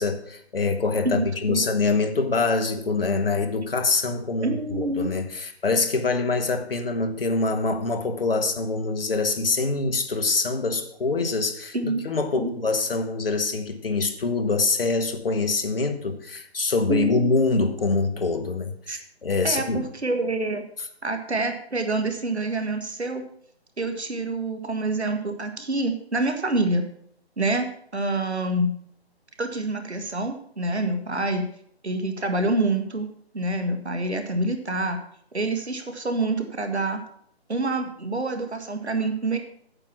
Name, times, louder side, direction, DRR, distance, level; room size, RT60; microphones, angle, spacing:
voice 1, 0.0-19.9, left 3 dB, 60° left, 7 dB, 1.5 m, -25 dB
voice 2, 1.0-1.6 4.4-5.1 11.7-12.0 12.3-12.5 16.9-17.2 18.9-19.0 19.4-20.6 21.0-23.2 23.8-26.9 27.4-28.7 29.4-31.5 31.8-33.1 33.3-35.0 35.3-37.0 37.5-39.4, right 2 dB, 80° right, 6 dB, 1.7 m, -26 dB
8.8 x 7.7 x 5.9 m, 0.65 s
figure-of-eight pair, 150°, 33 cm